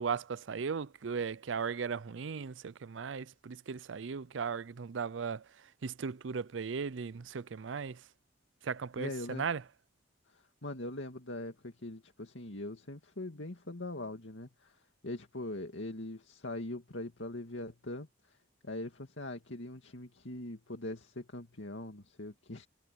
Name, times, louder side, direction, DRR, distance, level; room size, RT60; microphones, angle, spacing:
voice 1, 0.0-5.4 5.8-8.0 8.6-9.6, right 6 dB, 80° right, 0.5 m, -37 dB
voice 2, 8.9-9.5 10.3-18.4 18.6-22.7, left 1 dB, 80° left, 2.2 m, -42 dB
head